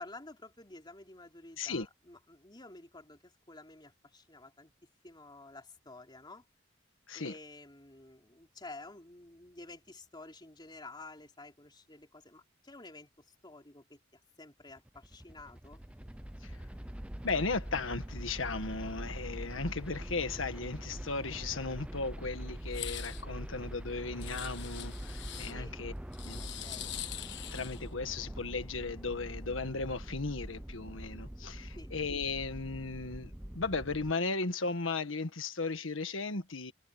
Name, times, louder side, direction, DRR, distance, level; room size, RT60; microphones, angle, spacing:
voice 1, 0.0-4.7 5.0-6.4 7.1-15.8 25.5-25.7 26.4-26.9 31.7-31.9, left 2 dB, 25° left, 3.7 m, -51 dB
voice 2, 1.6-1.9 7.1-7.4 16.4-16.7 17.2-25.9 26.2-26.7 27.5-36.7, left 3 dB, 90° left, 1.5 m, -36 dB
sound 1, 14.7-34.1, equal, 5° right, 0.6 m, -43 dB
sound 2, 22.7-23.2 24.2-25.5 26.1-27.9, left 12 dB, 65° left, 1.5 m, -43 dB
head